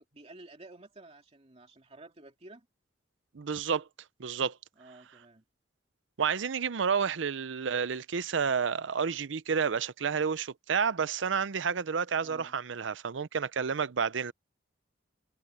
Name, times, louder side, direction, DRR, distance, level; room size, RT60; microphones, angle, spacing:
voice 1, 0.0-2.7 4.8-5.4 12.2-12.6, right 2 dB, 35° right, 2.6 m, -52 dB
voice 2, 3.3-3.9 4.2-4.6 6.2-14.3, right 6 dB, 80° right, 0.6 m, -30 dB
head